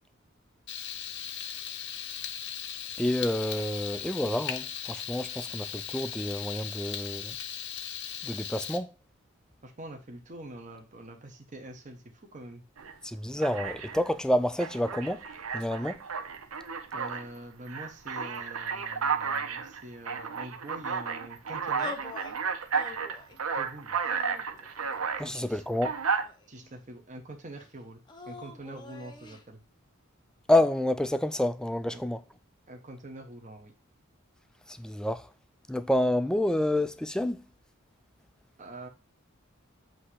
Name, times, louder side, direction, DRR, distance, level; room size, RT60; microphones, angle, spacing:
Frying (food), 0.7-8.8, left 9 dB, 55° left, 0.7 m, -38 dB
voice 1, 3.0-7.4 8.2-8.9 13.0-15.2 15.5-16.0 25.2-25.9 30.5-32.2 34.7-35.3 35.7-37.4, left 1 dB, 5° left, 0.3 m, -28 dB
voice 2, 9.6-12.6 16.9-22.0 23.5-24.0 25.2-25.7 26.5-29.6 31.9-32.0 32.7-33.7 38.6-38.9, right 1 dB, 35° right, 0.9 m, -45 dB
Alarm, 12.8-12.9 13.4-14.1 14.6-17.3 17.7-25.3 25.8-26.2, right 6 dB, 85° right, 0.8 m, -33 dB
sound 1, 21.8-22.4 22.7-23.4 24.0-24.9 25.7-26.7 28.1-29.4, left 3 dB, 20° left, 0.7 m, -44 dB
7.8 x 2.8 x 4.9 m
head